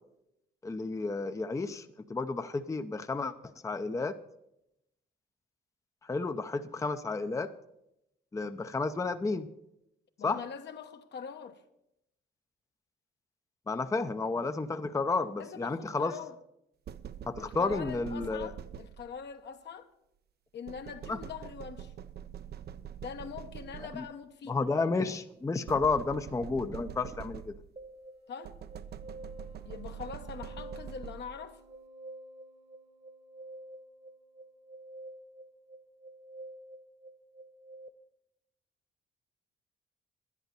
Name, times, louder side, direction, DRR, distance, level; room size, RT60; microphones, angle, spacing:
voice 1, 0.6-4.2 6.0-7.5 8.3-9.5 10.2-10.4 13.7-16.1 17.3-18.5 21.1-21.2 23.8-24.0 24.5-27.5, left 3 dB, 15° left, 0.6 m, -32 dB
voice 2, 10.2-11.6 15.4-16.3 17.4-19.9 20.5-21.9 23.0-24.6 28.3-28.6 29.6-31.6, left 6 dB, 60° left, 1.1 m, -43 dB
sound 1, 16.9-19.3 20.7-24.2 25.7-27.9 28.4-31.5, right 9 dB, 55° right, 0.6 m, -45 dB
sound 2, 27.8-37.9, right 1 dB, 30° right, 1.2 m, -49 dB
10.5 x 10.5 x 6.7 m
cardioid pair, 90°, 20 cm